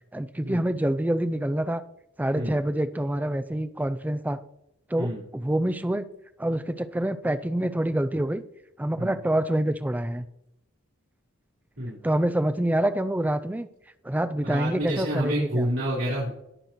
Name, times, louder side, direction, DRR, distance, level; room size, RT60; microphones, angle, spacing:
voice 1, 0.1-1.8 2.2-4.4 4.9-6.0 6.4-8.4 8.8-10.3 12.0-13.7 14.0-15.7, right 1 dB, 10° right, 12 dB, 0.4 m, -26 dB
voice 2, 14.4-16.3, equal, 75° right, -8 dB, 3.7 m, -28 dB
18.5 x 6.5 x 3.0 m, 0.84 s
head